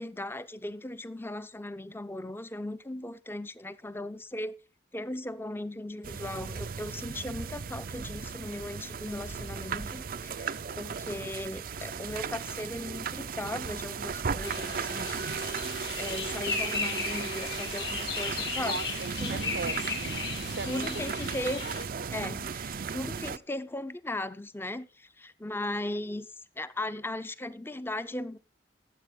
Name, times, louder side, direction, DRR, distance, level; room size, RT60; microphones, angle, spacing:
voice 1, 0.0-4.5 4.9-15.5 16.0-18.8 19.2-19.5 20.6-21.7 22.1-26.3 26.6-28.4, left 1 dB, 15° left, 0.6 m, -37 dB
sound 1, 6.0-23.4, right 6 dB, 55° right, 0.5 m, -36 dB
sound 2, 14.4-21.8, left 5 dB, 75° left, 3.2 m, -36 dB
voice 2, 18.6-21.4 21.6-21.9, right 4 dB, 80° right, 0.8 m, -39 dB
13.5 x 7.7 x 5.3 m
head